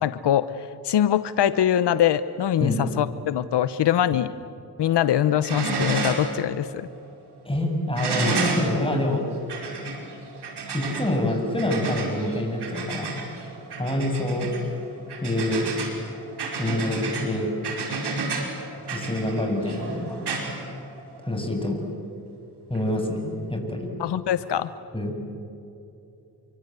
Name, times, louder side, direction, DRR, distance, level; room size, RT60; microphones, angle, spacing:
voice 1, 0.0-4.3 4.8-6.9 24.0-24.7, left 10 dB, 80° left, 14 dB, 0.9 m, -23 dB
sound 1, 4.8-5.1 5.4-6.4 6.7-6.8 8.0-21.3 22.7-22.8, right 3 dB, 75° right, 5.4 m, -31 dB
voice 2, 7.4-9.3 10.7-13.2 13.8-14.5 15.2-15.7 16.6-17.5 18.9-20.3 21.2-21.8 22.7-23.9 24.9-25.1, left 1 dB, 15° left, 2 dB, 7.5 m, -26 dB
28.5 x 25.0 x 8.1 m, 2.7 s
cardioid pair, 60°, 40 cm